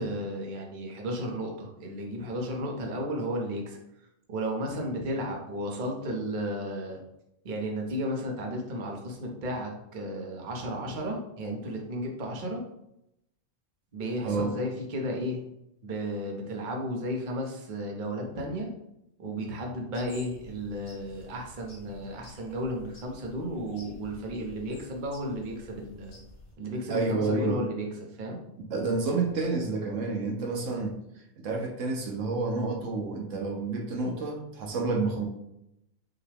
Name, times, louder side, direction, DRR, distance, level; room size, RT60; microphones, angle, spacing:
voice 1, 0.0-3.8 4.3-7.0 7.4-12.6 13.9-15.4 15.8-18.7 19.2-26.2 26.6-27.9 28.2-28.4, equal, 45° right, 0 dB, 0.9 m, -33 dB
Evening Birds Cardinal short, 19.9-26.5, left 1 dB, 85° left, 1.9 m, -51 dB
voice 2, 26.9-27.6 28.7-31.0 31.4-35.3, right 3 dB, 75° right, 2 dB, 1.0 m, -29 dB
5.7 x 2.2 x 3.3 m, 0.82 s
omnidirectional pair, 1.4 m